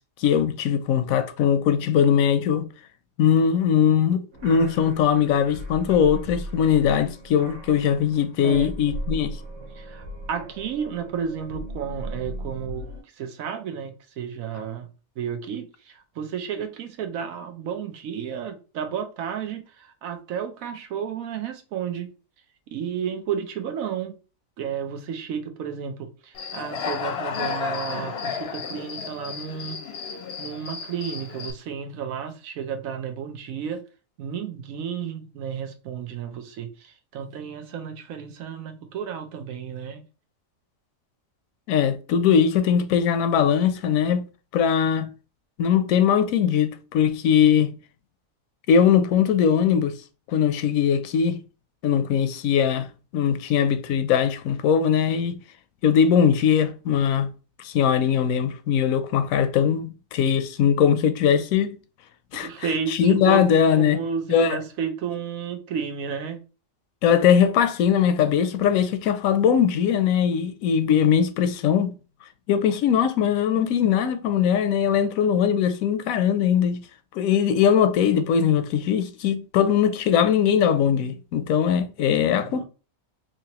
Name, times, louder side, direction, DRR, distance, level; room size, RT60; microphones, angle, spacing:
voice 1, 0.2-2.7 3.2-9.4 41.7-44.2 44.5-45.1 45.6-47.7 48.7-50.0 50.3-51.4 51.8-52.9 53.1-55.4 55.8-57.3 57.6-61.8 62.3-62.5 62.9-64.0 64.3-64.6 67.0-71.9 72.5-76.8 77.1-82.6, left 8 dB, 85° left, 1.0 m, -20 dB
sound 1, 4.3-13.0, right 1 dB, 65° right, 1.5 m, -37 dB
voice 2, 9.7-12.9 13.2-14.9 15.2-22.1 22.7-24.1 24.6-29.8 30.4-33.8 34.2-40.0 62.3-63.4 63.8-66.4 82.2-82.6, right 7 dB, 85° right, 1.1 m, -32 dB
Human voice / Cricket, 26.3-31.5, left 6 dB, 60° left, 0.7 m, -32 dB
3.7 x 2.9 x 2.9 m
omnidirectional pair, 1.4 m